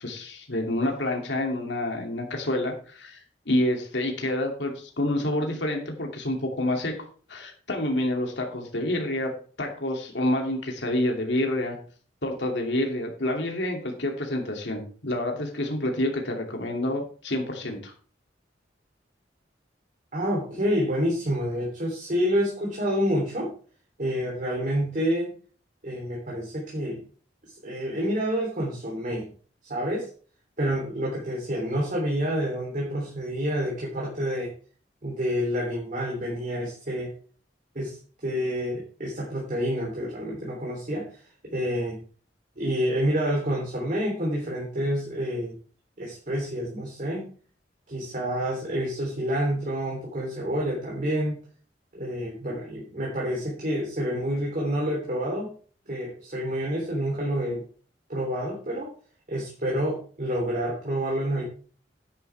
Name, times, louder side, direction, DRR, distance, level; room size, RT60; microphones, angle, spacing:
voice 1, 0.0-3.2 3.5-7.0 7.3-9.3 9.6-11.8 12.2-17.9, left 1 dB, 70° left, 1 dB, 2.6 m, -28 dB
voice 2, 20.1-23.5 24.0-25.3 25.8-27.0 27.4-29.3 29.7-30.1 30.6-34.5 35.0-37.1 37.7-42.0 42.6-45.5 46.0-47.3 47.9-51.4 51.9-55.5 55.9-57.6 58.1-58.9 59.3-61.4, equal, 45° right, -2 dB, 3.3 m, -28 dB
11.0 x 10.0 x 3.4 m, 0.42 s
head